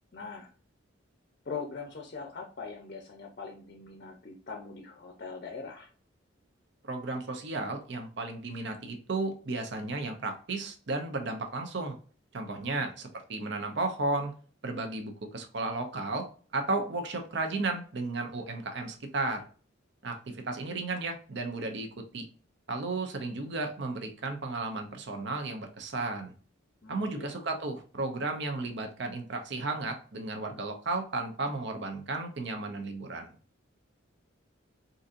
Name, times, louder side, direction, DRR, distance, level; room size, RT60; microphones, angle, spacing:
voice 1, 0.1-0.5 1.5-5.9 12.4-12.9 26.8-27.4, left 4 dB, 45° left, 2 dB, 0.5 m, -42 dB
voice 2, 6.8-12.0 12.3-14.3 14.6-16.3 16.5-19.5 20.0-21.9 22.1-22.3 22.7-26.3 26.9-33.3, right 3 dB, 60° right, 5 dB, 0.6 m, -34 dB
3.8 x 2.6 x 2.5 m, 0.40 s
head